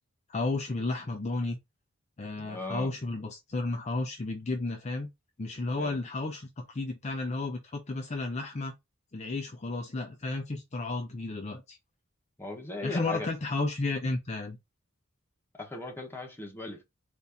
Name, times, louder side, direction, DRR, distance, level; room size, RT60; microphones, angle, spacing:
voice 1, 0.3-1.6 2.2-5.1 5.4-8.7 9.1-11.8 12.8-14.6, left 2 dB, 35° left, 0.6 m, -33 dB
voice 2, 2.4-2.9 5.8-6.0 12.4-13.3 15.6-16.8, left 2 dB, 10° left, 1.1 m, -38 dB
4.0 x 2.6 x 3.5 m
head